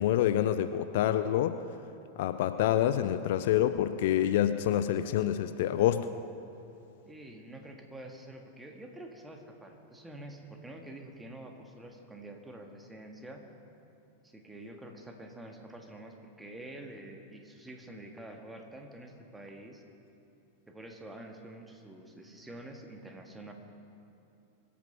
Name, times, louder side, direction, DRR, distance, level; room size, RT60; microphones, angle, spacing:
voice 1, 0.0-1.6 2.2-6.1, left 11 dB, 55° left, 11 dB, 0.5 m, -27 dB
voice 2, 7.1-13.5 14.2-19.8 20.7-23.5, right 1 dB, 10° right, 3 dB, 1.7 m, -47 dB
24.0 x 8.5 x 5.8 m, 2.7 s
figure-of-eight pair, 90°, 0 cm